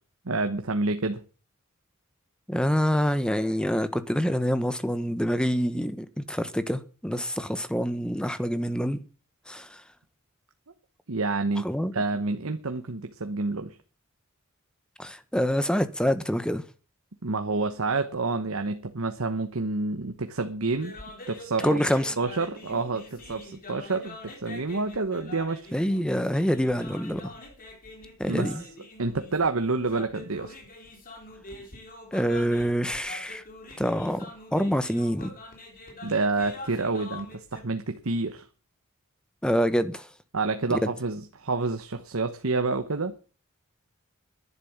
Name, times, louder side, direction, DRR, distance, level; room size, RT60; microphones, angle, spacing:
voice 1, 0.2-1.2 11.1-11.6 11.9-13.8 17.2-20.9 21.3-21.8 22.2-25.7 28.3-28.5 29.0-30.5 36.0-38.4 40.3-43.1, right 3 dB, 70° right, 1.1 m, -28 dB
voice 2, 2.5-9.0 9.5-9.7 11.6-11.9 15.0-16.6 21.6-22.1 25.7-27.3 28.2-28.6 32.1-33.4 33.8-34.3 34.5-35.3 39.4-40.1 40.7-40.8, equal, 5° left, 1.2 m, -26 dB
sound 1, 20.7-37.6, left 2 dB, 45° left, 3.6 m, -45 dB
11.0 x 11.0 x 7.3 m
head